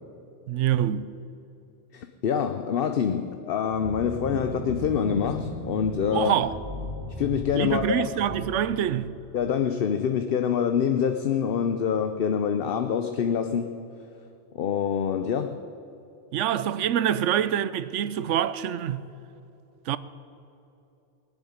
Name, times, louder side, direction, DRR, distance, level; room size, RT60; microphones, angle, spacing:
voice 1, 0.5-1.1 6.1-6.5 7.5-9.2 16.3-19.1 19.9-20.0, right 10 dB, 90° right, 1.0 m, -25 dB
voice 2, 1.9-6.4 7.2-8.0 9.3-13.8 14.5-15.6, left 7 dB, 60° left, 0.8 m, -26 dB
sound 1, 3.6-9.6, equal, 40° right, 2.7 m, -37 dB
19.5 x 7.2 x 9.6 m
omnidirectional pair, 1.2 m